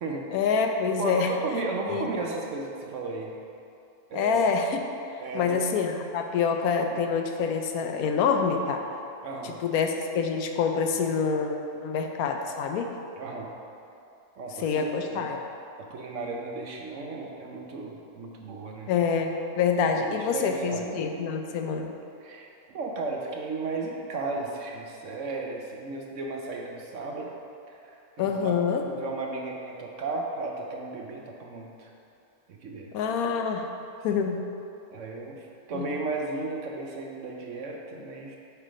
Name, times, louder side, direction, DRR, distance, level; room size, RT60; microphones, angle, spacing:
voice 1, 0.3-1.3 1.9-2.1 4.1-4.8 5.3-8.8 9.4-12.9 14.6-15.4 18.9-21.9 28.2-28.8 32.9-33.7 34.0-34.4 35.7-35.9, left 6 dB, 80° left, 4 dB, 1.0 m, -26 dB
voice 2, 1.0-3.3 4.1-4.4 5.2-5.6 9.2-9.6 13.2-13.5 14.4-15.3 15.8-18.9 19.9-20.9 22.2-27.3 27.7-28.6 28.8-31.9 32.5-32.9 34.1-34.2 34.9-38.4, right 3 dB, 60° right, 0 dB, 1.0 m, -35 dB
8.0 x 3.4 x 5.0 m, 2.6 s
omnidirectional pair, 1.6 m